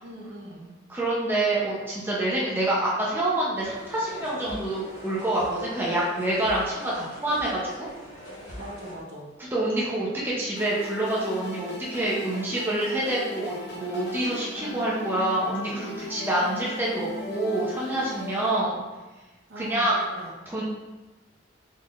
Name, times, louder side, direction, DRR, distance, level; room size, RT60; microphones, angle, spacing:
voice 1, 0.0-0.8 8.5-9.3 19.5-20.3, right 1 dB, 55° right, -3 dB, 0.8 m, -41 dB
voice 2, 0.9-7.9 9.4-18.8 19.6-20.0 20.5-20.6, right 1 dB, 10° right, -7 dB, 0.7 m, -27 dB
sound 1, 3.5-8.9, left 1 dB, 40° left, 1.4 m, -42 dB
sound 2, 10.6-18.6, left 2 dB, 60° left, 0.7 m, -38 dB
4.2 x 3.6 x 2.5 m, 1.2 s
head